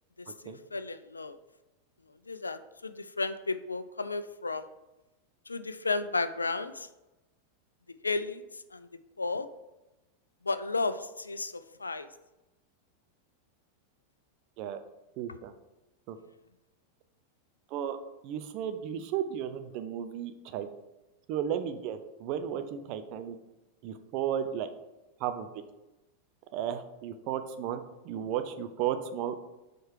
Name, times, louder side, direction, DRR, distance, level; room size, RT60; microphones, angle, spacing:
voice 1, 0.4-1.4 2.3-4.6 5.5-6.9 8.0-8.4 8.7-8.9 9.2-9.5 10.5-11.5 11.8-12.1, left 3 dB, 80° left, 12 dB, 0.3 m, -33 dB
voice 2, 15.2-15.5 16.1-16.2 17.7-18.0 18.2-20.7 21.3-23.4 23.8-24.7 25.2-25.5 26.5-29.5, right 9 dB, 45° right, 9 dB, 0.5 m, -34 dB
4.6 x 4.5 x 4.6 m, 1.0 s
figure-of-eight pair, 90°, 0 cm